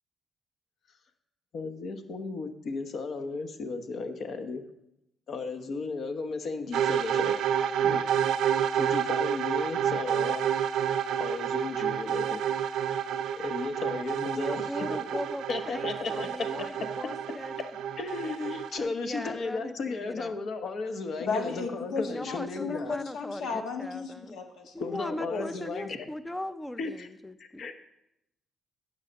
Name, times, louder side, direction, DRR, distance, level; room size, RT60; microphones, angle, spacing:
voice 1, 1.5-4.6 5.3-7.4 7.8-8.0 8.8-10.5 11.2-12.4 13.3-14.9 15.5-16.3 16.5-17.1 18.0-22.9 23.5-23.6 24.8-26.1 26.8-27.1 27.4-27.8, left 4 dB, 60° left, 7 dB, 1.1 m, -35 dB
sound 1, 6.7-18.8, right 9 dB, 80° right, 0.5 m, -29 dB
voice 2, 14.4-17.7 18.8-20.4 22.0-24.4 24.7-27.7, left 1 dB, 10° left, 13 dB, 0.5 m, -39 dB
voice 3, 21.3-24.7 25.3-25.5, left 4 dB, 80° left, 4 dB, 1.4 m, -34 dB
9.5 x 5.6 x 6.5 m, 0.85 s
cardioid pair, 90°, 0 cm